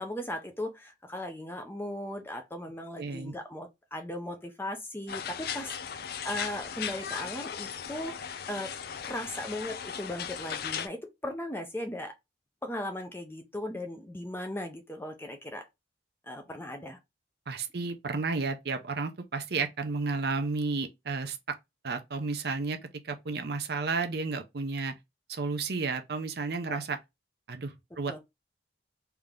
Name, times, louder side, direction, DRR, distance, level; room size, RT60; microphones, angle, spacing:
voice 1, 0.0-5.8 6.2-8.7 9.0-12.1 12.6-15.7 16.3-17.0 26.7-26.8 28.1-28.2, left 1 dB, 10° left, 0.6 m, -37 dB
voice 2, 3.0-3.3 17.5-21.4 21.8-22.8 23.0-24.9 25.3-27.0 27.5-28.2, right 4 dB, 55° right, 0.6 m, -32 dB
sound 1, 5.1-10.9, left 8 dB, 55° left, 0.4 m, -37 dB
3.4 x 2.9 x 3.7 m
head